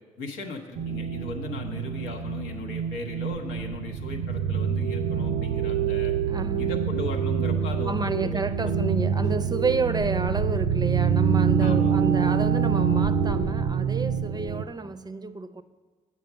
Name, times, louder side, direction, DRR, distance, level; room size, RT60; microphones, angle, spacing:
voice 1, 0.2-6.1 6.6-8.7 11.6-11.9, left 2 dB, 85° left, 0.8 m, -37 dB
sound 1, 0.7-14.6, right 7 dB, 75° right, 0.5 m, -26 dB
voice 2, 6.3-6.8 7.9-15.6, right 3 dB, 25° right, 0.5 m, -30 dB
7.7 x 4.9 x 6.8 m
hypercardioid pair, 45°, 16 cm